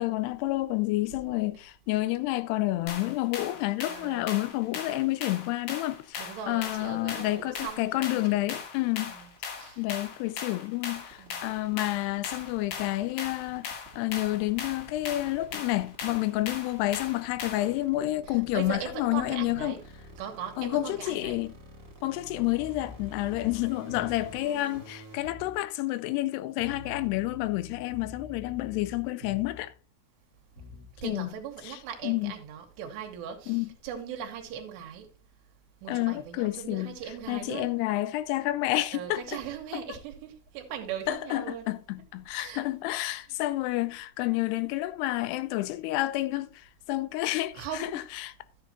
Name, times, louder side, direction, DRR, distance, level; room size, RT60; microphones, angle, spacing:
voice 1, 0.0-9.2 9.8-19.8 20.6-21.5 22.0-29.7 31.0-31.3 31.6-32.3 33.5-33.7 35.9-37.0 37.3-39.2 39.7-39.8 41.1-48.3, left 17 dB, 85° left, 2.6 m, -29 dB
sound 1, 2.9-17.8, left 6 dB, 65° left, 2.6 m, -39 dB
voice 2, 3.8-4.3 6.2-8.6 9.1-9.3 9.5-9.8 11.2-11.4 18.3-19.8 20.2-21.4 31.0-35.1 35.8-37.7 38.9-41.7 42.4-42.6 47.5-48.1, right 8 dB, 90° right, 3.4 m, -39 dB
sound 2, 8.2-25.2, right 1 dB, 25° right, 2.2 m, -49 dB
sound 3, 22.6-24.4 25.2-25.6 26.6-29.7 30.6-31.0, left 2 dB, 25° left, 2.7 m, -46 dB
12.0 x 7.8 x 2.9 m
omnidirectional pair, 4.7 m